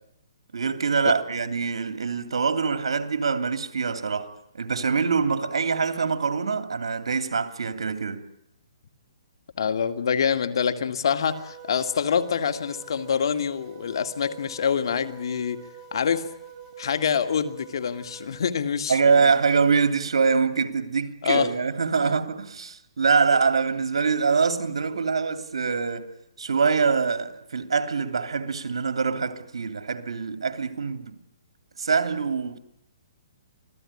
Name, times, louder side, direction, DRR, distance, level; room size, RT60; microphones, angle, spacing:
voice 1, 0.5-8.3 18.9-26.1 26.4-31.2 31.8-32.6, right 5 dB, 85° right, 2.8 m, -24 dB
voice 2, 9.6-15.6 15.9-16.2 16.8-19.3 21.2-21.5 22.0-22.1, left 7 dB, 60° left, 2.2 m, -26 dB
sound 1, 11.2-18.4, right 6 dB, 20° right, 3.2 m, -46 dB
26.5 x 17.0 x 9.8 m
hypercardioid pair, 160°, 3 cm